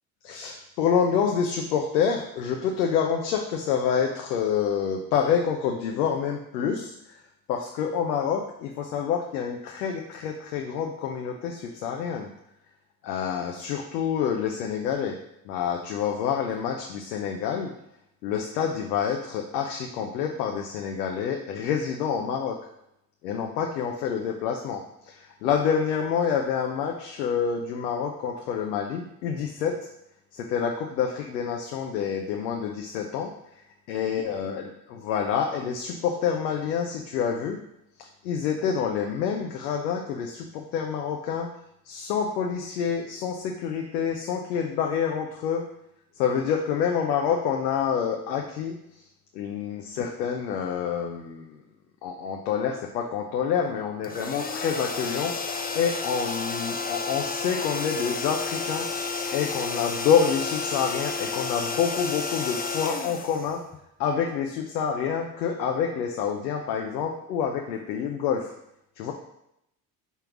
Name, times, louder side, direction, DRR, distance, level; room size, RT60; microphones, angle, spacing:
voice 1, 0.2-7.2 7.5-12.3 13.0-15.2 15.4-17.7 18.2-22.6 23.2-29.8 30.3-33.3 33.9-34.6 35.0-37.6 38.0-41.5 41.8-45.6 46.1-48.8 49.3-51.6 52.0-58.9 59.3-63.6 64.0-68.5 69.0-69.1, left 7 dB, 75° left, 2 dB, 0.8 m, -27 dB
sound 1, 54.0-64.0, left 4 dB, 20° left, 0.8 m, -31 dB
5.4 x 4.4 x 6.0 m, 0.80 s
figure-of-eight pair, 55°, 50 cm